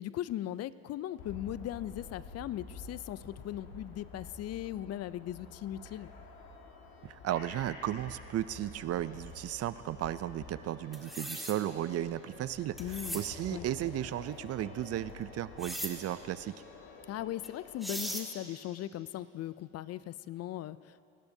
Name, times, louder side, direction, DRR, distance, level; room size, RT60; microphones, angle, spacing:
voice 1, 0.0-6.1 12.8-13.2 13.5-13.6 17.1-21.0, left 12 dB, 55° left, 17 dB, 0.4 m, -38 dB
sound 1, 1.2-18.2, left 3 dB, 80° left, 1.6 m, -50 dB
voice 2, 7.0-16.6, right 12 dB, 50° right, 15 dB, 0.5 m, -35 dB
sound 2, 10.9-11.6 12.8-13.2 15.6-15.9 17.4-17.5 17.8-18.3, equal, ahead, 1.7 m, -38 dB
25.5 x 12.0 x 2.7 m, 2.6 s
supercardioid pair, 80°, 31 cm